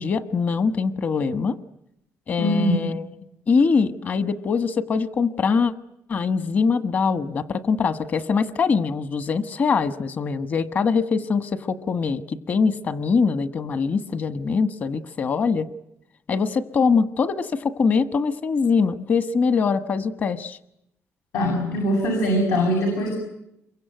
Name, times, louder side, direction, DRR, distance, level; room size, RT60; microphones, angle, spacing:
voice 1, 0.0-1.6 2.3-3.1 3.5-5.7 6.1-15.7 16.3-20.6, left 5 dB, 35° left, 12 dB, 1.3 m, -23 dB
voice 2, 2.4-2.7 21.3-23.1, equal, 85° left, 1 dB, 8.0 m, -22 dB
27.5 x 23.5 x 9.2 m, 0.81 s
cardioid pair, 175°, 5 cm